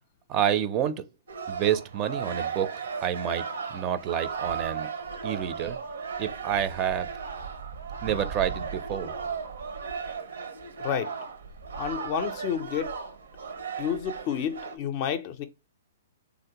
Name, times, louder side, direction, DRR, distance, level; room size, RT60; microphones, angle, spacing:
voice 1, 0.3-1.0 1.5-2.7 3.0-3.4 3.7-4.9 5.2-5.8 6.2-7.1 8.0-9.1, right 9 dB, 30° right, 0.4 m, -28 dB
sound 1, 1.3-14.8, right 6 dB, 85° right, 0.8 m, -36 dB
voice 2, 10.8-11.1 11.7-12.9 13.8-15.5, left 8 dB, 45° left, 0.4 m, -30 dB
3.2 x 2.5 x 2.8 m
hypercardioid pair, 135°, 0 cm